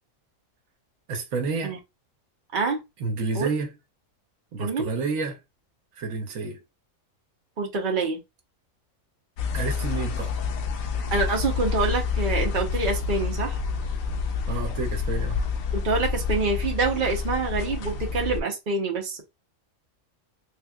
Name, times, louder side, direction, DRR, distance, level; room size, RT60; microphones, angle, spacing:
voice 1, 1.1-1.8 3.0-3.8 4.5-5.4 6.0-6.6 9.5-10.3 14.5-15.4, right 4 dB, 85° right, 1.2 m, -29 dB
voice 2, 7.6-8.2 11.1-13.6 15.7-19.2, right 3 dB, 45° right, 1.0 m, -26 dB
sound 1, 9.4-18.4, left 5 dB, 85° left, 1.0 m, -28 dB
3.4 x 3.1 x 2.3 m
omnidirectional pair, 1.4 m